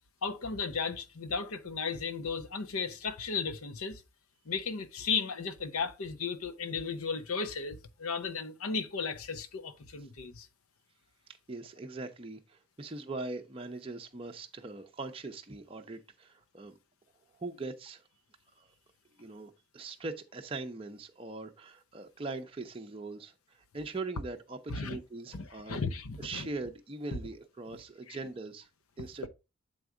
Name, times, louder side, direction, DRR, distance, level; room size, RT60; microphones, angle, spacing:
voice 1, 0.2-4.0 4.5-10.5 24.7-25.0 25.3-26.5 28.1-28.2, left 5 dB, 85° left, 0.7 m, -35 dB
voice 2, 11.5-16.7 17.4-18.0 18.6-18.7 19.2-25.8 26.2-28.7 29.0-29.3, right 3 dB, 25° right, 0.5 m, -41 dB
7.0 x 4.6 x 3.7 m
head